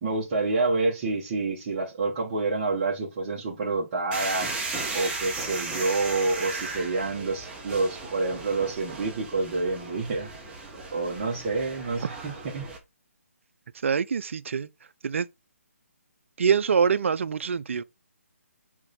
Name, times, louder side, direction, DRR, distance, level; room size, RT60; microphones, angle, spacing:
voice 1, 0.0-4.5 4.9-10.3 10.9-12.7, right 3 dB, 30° right, 1.8 m, -28 dB
sound 1, 4.1-12.8, right 3 dB, 10° right, 1.5 m, -36 dB
voice 2, 13.8-14.7 15.0-15.3 16.4-17.8, right 6 dB, 60° right, 0.6 m, -24 dB
5.3 x 4.8 x 3.9 m
hypercardioid pair, 155°, 8 cm